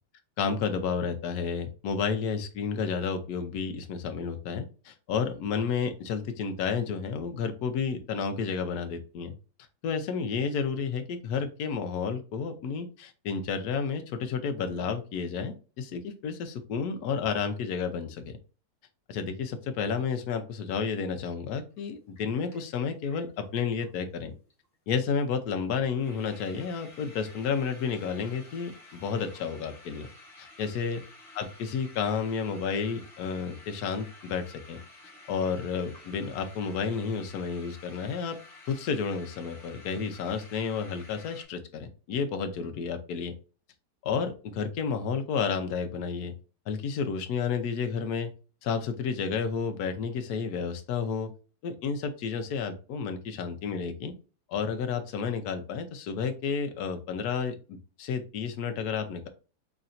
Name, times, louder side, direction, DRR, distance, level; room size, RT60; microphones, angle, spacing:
voice 1, 0.4-9.3 9.8-18.4 19.1-24.3 24.9-30.1 30.4-31.0 31.3-34.8 35.3-38.4 38.7-43.3 44.0-46.3 46.7-48.3 48.6-51.3 51.6-54.1 54.5-59.3, left 6 dB, 70° left, 6 dB, 1.1 m, -31 dB
sound 1, 21.8-21.9 22.2-23.9 24.2-24.3 24.5-24.7 25.0-25.1 25.5-25.6 25.8-41.4, left 2 dB, 30° left, 1.5 m, -52 dB
4.1 x 3.3 x 2.5 m, 0.34 s
omnidirectional pair, 1.8 m